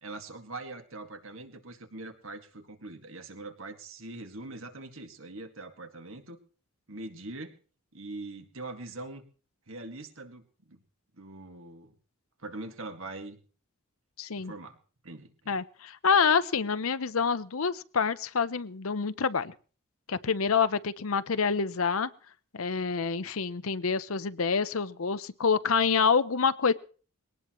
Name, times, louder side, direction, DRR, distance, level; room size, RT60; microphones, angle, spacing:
voice 1, 0.0-6.4 6.9-7.5 7.9-9.2 9.7-10.8 11.2-11.9 12.4-13.4 14.4-14.7 15.0-15.6, right 2 dB, 65° right, 6 dB, 2.1 m, -42 dB
voice 2, 14.2-14.5 15.5-19.5 20.1-22.1 22.5-26.7, left 5 dB, 75° left, 13 dB, 0.8 m, -27 dB
21.5 x 18.0 x 3.1 m, 0.40 s
head